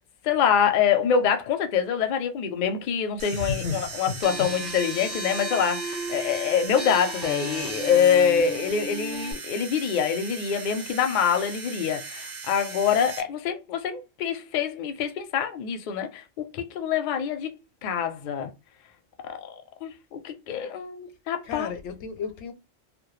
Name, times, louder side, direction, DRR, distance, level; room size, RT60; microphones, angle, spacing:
voice 1, 0.2-17.5 17.8-18.5 19.2-19.5 19.8-21.7, left 7 dB, 60° left, 0.5 m, -25 dB
sound 1, 3.2-13.2, right 4 dB, 55° right, 0.5 m, -38 dB
voice 2, 3.3-4.5 21.4-22.5, left 5 dB, 80° left, 0.9 m, -33 dB
sound 2, 4.2-9.3, right 2 dB, ahead, 0.4 m, -35 dB
2.1 x 2.0 x 3.0 m
omnidirectional pair, 1.1 m